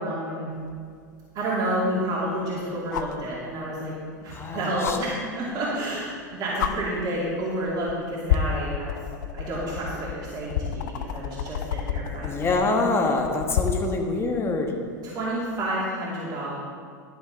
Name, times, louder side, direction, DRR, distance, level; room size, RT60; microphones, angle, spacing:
voice 1, 0.0-0.5 1.3-9.0 9.3-12.5 15.0-16.5, right 1 dB, 40° right, -7 dB, 2.5 m, -30 dB
sound 1, 0.7-0.8 2.9-3.2 4.8-5.0 6.1-6.2 6.6-6.7 7.7-7.9 8.3-14.0 15.6-15.7, left 9 dB, 70° left, 0.6 m, -29 dB
voice 2, 4.3-5.0 12.2-14.7, left 3 dB, 25° left, 2 dB, 1.4 m, -25 dB
11.5 x 6.9 x 4.0 m, 2.1 s
hypercardioid pair, 90°, 10 cm